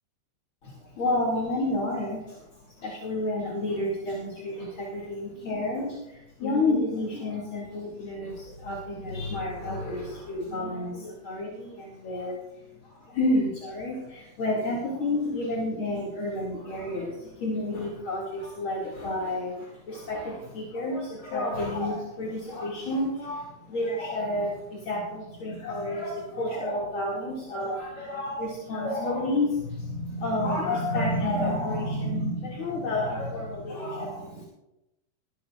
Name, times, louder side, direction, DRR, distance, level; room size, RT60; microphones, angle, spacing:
voice 1, 0.6-34.4, left 1 dB, 35° left, -5 dB, 2.4 m, -30 dB
22.0 x 13.5 x 2.5 m, 0.91 s
omnidirectional pair, 4.9 m